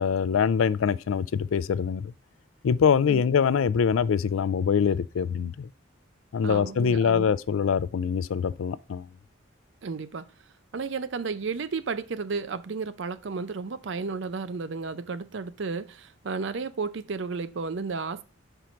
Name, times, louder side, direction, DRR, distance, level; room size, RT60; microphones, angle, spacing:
voice 1, 0.0-2.1 2.6-5.7 6.3-9.1, left 6 dB, 85° left, 0.4 m, -24 dB
voice 2, 6.4-7.3 9.8-10.3 10.7-18.2, right 4 dB, 65° right, 0.5 m, -33 dB
5.7 x 4.6 x 5.1 m
head